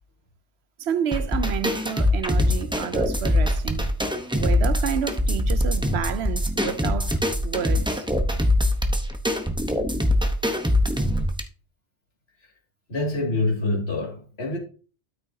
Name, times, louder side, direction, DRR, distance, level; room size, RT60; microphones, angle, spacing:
voice 1, 0.8-3.9 4.3-7.2 7.4-8.0, right 8 dB, 70° right, 0.9 m, -30 dB
sound 1, 1.1-11.4, left 1 dB, 5° right, 0.7 m, -23 dB
voice 2, 12.9-14.6, left 2 dB, 65° left, 2.6 m, -26 dB
12.5 x 6.3 x 2.7 m
omnidirectional pair, 1.2 m